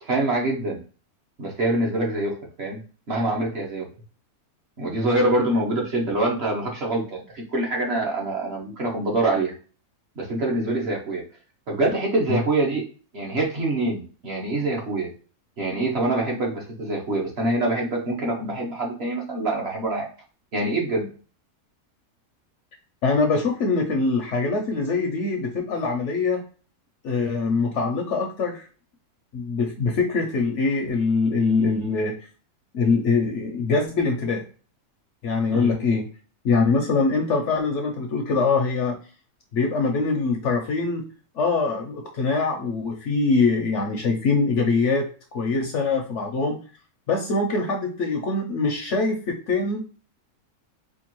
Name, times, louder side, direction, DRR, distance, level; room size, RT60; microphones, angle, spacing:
voice 1, 0.1-0.8 1.4-2.8 3.1-3.8 4.8-9.5 10.2-11.2 11.7-12.8 13.1-15.1 15.6-20.1 20.5-21.1 35.5-35.7, right 2 dB, 50° right, -1 dB, 1.1 m, -25 dB
voice 2, 23.0-26.4 27.0-28.7 29.3-32.1 32.7-34.4 35.2-36.1 36.4-39.0 39.5-41.0 41.4-45.0 45.3-46.6 47.1-49.8, left 4 dB, 65° left, 3 dB, 0.8 m, -23 dB
4.4 x 2.4 x 2.9 m, 0.38 s
omnidirectional pair, 1.6 m